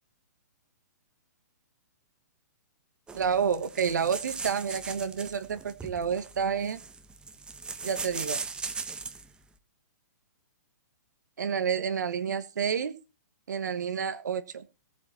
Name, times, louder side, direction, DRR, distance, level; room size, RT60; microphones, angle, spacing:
sound 1, 3.1-9.3, right 4 dB, 10° right, 1.2 m, -39 dB
voice 1, 3.1-6.8 7.8-8.4 11.4-13.0 13.5-14.6, right 7 dB, 75° right, 9 dB, 1.4 m, -29 dB
16.5 x 8.6 x 4.3 m, 0.30 s
hypercardioid pair, 130°, 10 cm